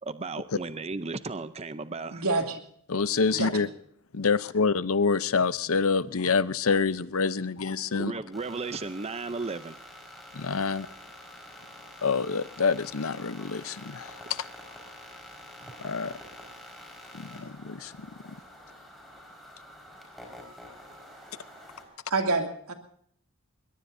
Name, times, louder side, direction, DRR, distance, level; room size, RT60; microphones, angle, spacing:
voice 1, 0.0-2.2 7.9-9.8 15.6-15.7 20.7-22.0, right 3 dB, 30° right, 0.6 m, -36 dB
voice 2, 2.1-2.6 3.3-3.5 22.1-22.7, right 3 dB, 85° right, 2.6 m, -27 dB
voice 3, 2.9-3.7 4.1-8.1 10.3-10.9 12.0-14.1 15.8-16.2 17.1-18.1, left 5 dB, 70° left, 0.7 m, -27 dB
sound 1, 8.3-21.8, left 1 dB, ahead, 4.9 m, -47 dB
21.5 x 21.0 x 2.7 m
head